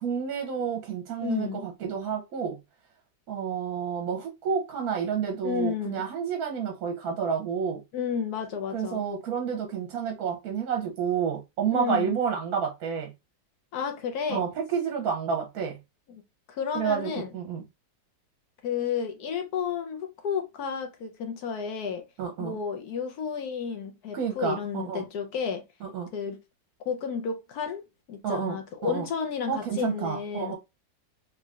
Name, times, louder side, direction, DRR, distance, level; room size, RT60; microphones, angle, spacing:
voice 1, 0.0-2.6 3.3-7.8 8.7-13.1 14.3-15.8 16.7-17.6 22.2-22.6 24.1-25.0 25.8-26.1 28.2-28.6 28.8-29.1 29.5-30.6, right 7 dB, 60° right, 1.0 m, -30 dB
voice 2, 1.2-1.7 5.4-6.0 7.9-9.0 11.7-12.1 13.7-14.4 16.1-16.2 16.5-17.3 18.6-22.1 22.4-25.6 26.1-26.4 26.9-27.8 28.1-30.6, left 6 dB, 65° left, 1.1 m, -31 dB
3.6 x 3.1 x 2.4 m
omnidirectional pair, 2.0 m